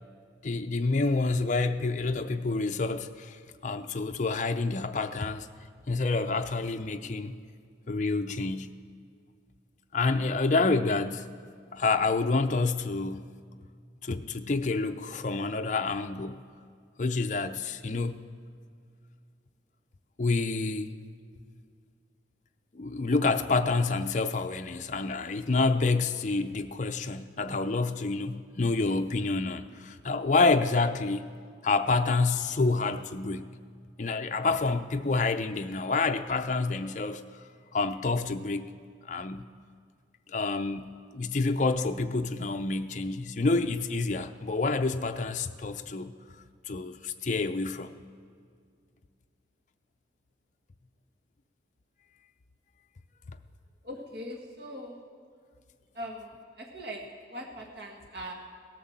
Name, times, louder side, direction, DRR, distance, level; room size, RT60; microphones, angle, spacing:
voice 1, 0.4-5.5 5.9-7.3 7.9-8.7 9.9-11.3 11.7-13.3 14.0-16.4 17.0-18.2 20.2-20.9 22.7-31.3 31.6-33.5 34.0-37.3 37.7-38.7 39.1-39.4 40.3-46.1 46.7-48.0, left 3 dB, 40° left, 0.5 m, -28 dB
voice 2, 53.8-55.0 55.9-58.3, equal, 60° right, 1.6 m, -41 dB
17.5 x 11.0 x 7.3 m
head